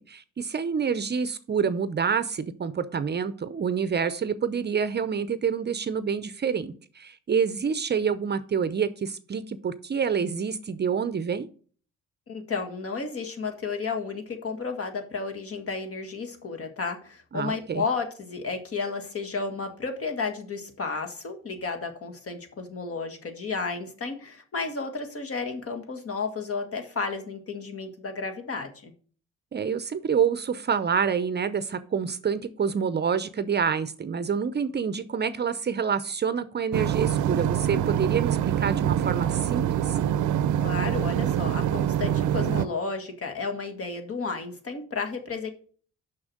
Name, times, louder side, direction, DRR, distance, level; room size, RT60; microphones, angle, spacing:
voice 1, 0.1-11.5 17.3-17.8 29.5-40.0, right 6 dB, 35° right, 13 dB, 0.6 m, -27 dB
voice 2, 12.3-28.9 40.6-45.5, left 4 dB, 50° left, 6 dB, 1.8 m, -32 dB
sound 1, 36.7-42.7, right 10 dB, 75° right, 0.6 m, -25 dB
6.2 x 6.0 x 6.4 m, 0.44 s
cardioid pair, 90°, 30 cm